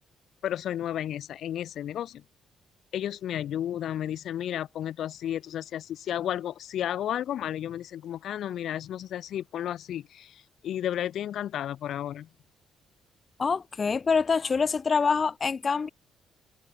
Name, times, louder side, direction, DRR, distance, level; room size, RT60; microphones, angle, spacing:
voice 1, 0.4-2.2 2.9-12.3, left 11 dB, 70° left, 1.3 m, -32 dB
voice 2, 13.4-15.9, left 5 dB, 35° left, 1.3 m, -25 dB
cardioid pair, 90°, 0 cm